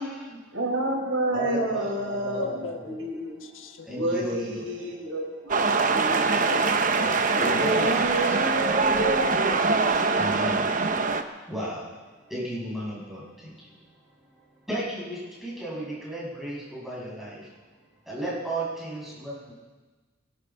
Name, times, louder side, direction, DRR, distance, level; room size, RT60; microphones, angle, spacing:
voice 1, 0.0-0.4 1.3-2.8 3.8-4.6 7.4-8.0 10.2-10.7 11.5-11.8 12.3-13.5 14.7-17.4 18.1-19.5, right 1 dB, ahead, -8 dB, 6.8 m, -33 dB
voice 2, 0.5-3.5 3.9-5.5 5.9-6.7 7.3-9.3 9.8-10.2, right 1 dB, 85° right, 1 dB, 4.2 m, -29 dB
voice 3, 2.3-3.9 6.5-7.5, left 5 dB, 80° left, 6 dB, 1.3 m, -38 dB
sound 1, 5.5-11.2, right 4 dB, 40° right, 0.9 m, -23 dB
24.0 x 12.5 x 4.6 m, 1.3 s
head